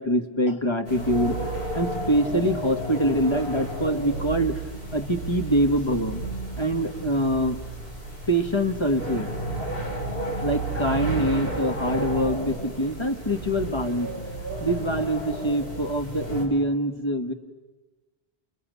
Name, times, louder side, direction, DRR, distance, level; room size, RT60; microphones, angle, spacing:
voice 1, 0.0-1.4 1.7-4.6 4.9-6.2 6.6-7.6 8.3-9.3 9.6-9.7 10.4-14.1 14.6-17.3, equal, 25° left, 6 dB, 1.7 m, -24 dB
sound 1, 0.8-16.4, right 1 dB, 65° left, 5.7 m, -32 dB
29.5 x 29.0 x 6.9 m, 1.2 s
omnidirectional pair, 1.1 m